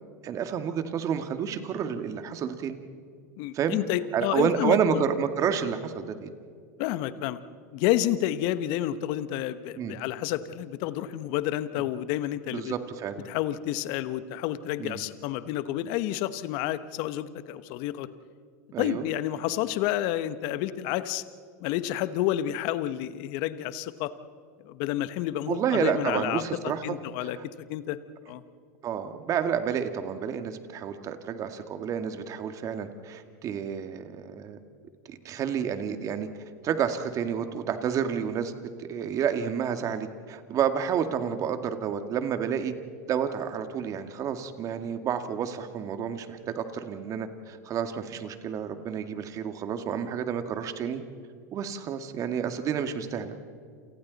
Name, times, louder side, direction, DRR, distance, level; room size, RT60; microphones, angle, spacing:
voice 1, 0.2-2.8 3.5-3.8 4.1-6.3 9.8-10.0 12.5-13.3 14.8-15.0 18.7-19.1 25.5-27.0 27.2-27.4 28.8-34.6 35.1-36.3 36.6-38.5 38.8-42.7 43.1-51.0 51.5-53.4, right 8 dB, 35° right, 8 dB, 2.1 m, -30 dB
voice 2, 3.4-5.0 6.8-7.4 7.7-12.7 13.3-18.1 18.8-21.2 21.6-24.1 24.6-27.4 27.7-28.0 28.3-28.4, left 13 dB, 55° left, 13 dB, 1.1 m, -30 dB
29.0 x 28.5 x 4.1 m, 2.2 s
hypercardioid pair, 105°, 9 cm